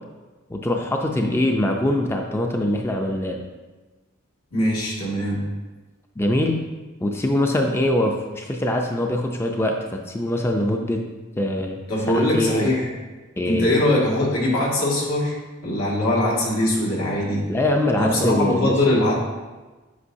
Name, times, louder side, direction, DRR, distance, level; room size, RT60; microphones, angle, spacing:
voice 1, 0.5-3.4 6.2-6.6 7.0-9.8 10.1-11.0 11.4-11.8 12.1-12.7 13.4-13.7 17.5-18.8, left 1 dB, 10° left, 2 dB, 0.4 m, -23 dB
voice 2, 4.5-5.4 11.9-12.9 13.5-15.4 15.6-17.5 18.0-19.1, left 1 dB, 85° left, -4 dB, 1.9 m, -21 dB
8.1 x 5.5 x 2.7 m, 1.2 s
head